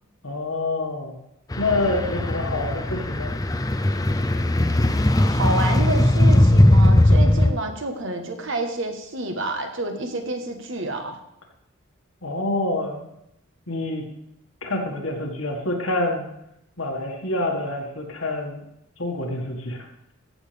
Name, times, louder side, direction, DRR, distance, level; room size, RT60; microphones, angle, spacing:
voice 1, 0.2-1.2 1.6-3.3 12.2-13.1 13.7-14.1 14.6-16.2 16.8-18.6 19.0-19.9, left 2 dB, 80° left, 1 dB, 1.9 m, -27 dB
sound 1, 1.5-7.5, left 1 dB, 20° left, 0.5 m, -18 dB
voice 2, 5.3-11.2, right 2 dB, 65° right, 5 dB, 1.3 m, -29 dB
15.0 x 7.0 x 3.5 m, 0.81 s
head